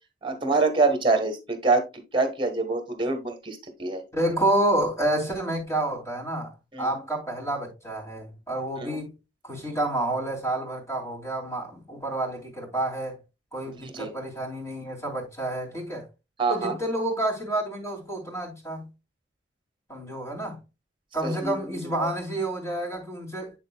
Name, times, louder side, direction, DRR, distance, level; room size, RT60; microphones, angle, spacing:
voice 1, 0.2-1.9 2.1-4.0 6.7-6.9 8.8-9.0 13.8-14.1 16.4-16.7 21.2-22.1, right 3 dB, 25° right, 1.5 m, -25 dB
voice 2, 4.1-6.5 6.8-9.1 9.4-13.2 13.5-16.1 16.5-18.9 19.9-20.6 21.1-23.5, right 1 dB, 15° left, 2.7 m, -29 dB
8.6 x 6.5 x 2.3 m
head